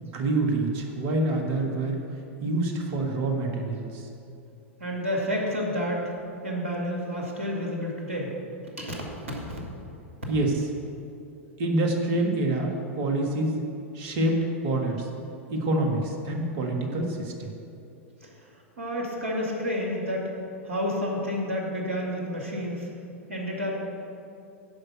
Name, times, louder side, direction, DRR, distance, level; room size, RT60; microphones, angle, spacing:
voice 1, 0.0-2.0 2.4-4.1 10.3-10.6 11.6-13.6 13.9-15.1 15.5-17.6, right 2 dB, 45° right, 2 dB, 1.7 m, -26 dB
voice 2, 4.8-6.0 6.4-8.3 8.8-9.6 18.2-18.3 18.8-20.3 20.6-22.9 23.3-23.7, equal, 75° right, -1 dB, 2.2 m, -30 dB
10.5 x 5.4 x 7.6 m, 2.6 s
figure-of-eight pair, 95°, 7 cm